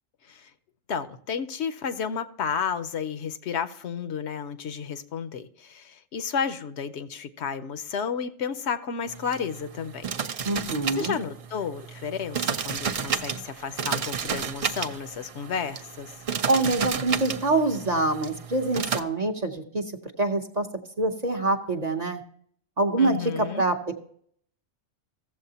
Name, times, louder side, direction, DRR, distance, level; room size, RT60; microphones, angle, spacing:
voice 1, 0.9-10.0 11.0-16.1 23.0-23.6, left 6 dB, 70° left, 11 dB, 0.9 m, -32 dB
sound 1, 9.1-19.0, right 6 dB, 60° right, 0.4 m, -32 dB
voice 2, 10.4-11.2 16.5-19.9 20.2-20.7 21.0-22.2 22.8-24.0, right 2 dB, 40° right, 4 dB, 0.7 m, -25 dB
15.0 x 7.5 x 2.8 m, 0.63 s
omnidirectional pair, 1.2 m